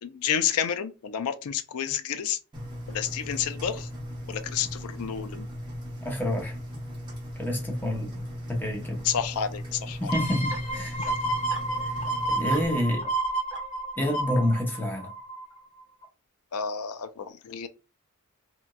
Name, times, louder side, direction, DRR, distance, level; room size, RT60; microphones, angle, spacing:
voice 1, 0.0-2.4 2.9-3.9 4.3-5.5 9.0-10.1 16.5-17.7, left 8 dB, 90° left, 0.4 m, -30 dB
Engine, 2.5-12.6, equal, 20° right, 0.9 m, -38 dB
voice 2, 6.0-6.6 7.4-8.2 8.5-9.1 10.0-11.0 11.8-11.9 12.3-13.1 14.0-15.1, left 1 dB, 10° left, 0.7 m, -28 dB
sound 1, 10.1-15.6 16.0-16.1, right 2 dB, 30° left, 1.2 m, -30 dB
2.9 x 2.5 x 2.3 m
head